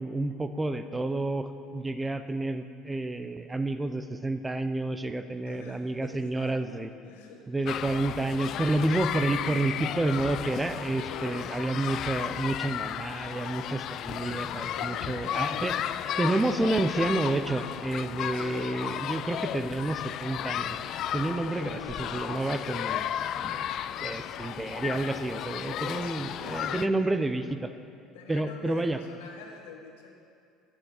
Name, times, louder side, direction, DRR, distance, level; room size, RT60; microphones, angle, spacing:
voice 1, 0.0-6.9 7.5-15.7 16.2-20.8 21.1-23.1 23.4-23.7 24.0-27.7 28.3-29.0, right 2 dB, 15° right, 10 dB, 0.6 m, -30 dB
voice 2, 5.3-8.9 9.3-9.6 11.1-11.5 14.6-16.1 18.3-18.7 21.4-22.4 26.0-27.1 28.1-30.2, left 5 dB, 90° left, 1 dB, 1.5 m, -45 dB
sound 1, 7.7-26.9, left 10 dB, 55° left, 0.3 m, -34 dB
9.0 x 7.2 x 8.1 m, 2.4 s
supercardioid pair, 90°, 0 cm